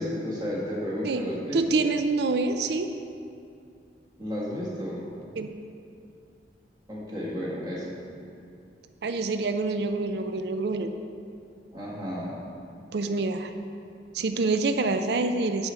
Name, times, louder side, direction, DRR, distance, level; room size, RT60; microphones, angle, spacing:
voice 1, 0.0-1.8 4.2-5.0 6.9-7.9 11.7-12.3, equal, 20° right, -6 dB, 1.6 m, -32 dB
voice 2, 1.5-2.9 5.4-5.5 9.0-10.9 12.9-13.5 14.1-15.7, right 3 dB, 65° right, 8 dB, 0.4 m, -26 dB
10.5 x 4.4 x 5.6 m, 2.5 s
head